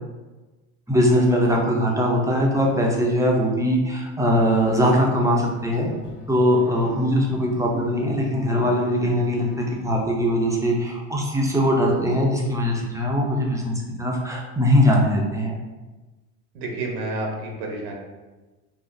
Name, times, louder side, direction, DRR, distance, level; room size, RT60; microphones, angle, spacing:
voice 1, 0.9-5.9 6.3-9.5 9.8-15.6, equal, 5° right, -2 dB, 0.4 m, -21 dB
sound 1, 4.3-10.4, left 5 dB, 85° left, 0.7 m, -41 dB
voice 2, 16.5-17.9, right 2 dB, 80° right, 0 dB, 1.0 m, -29 dB
4.0 x 2.4 x 2.5 m, 1.2 s
supercardioid pair, 100°, 45 cm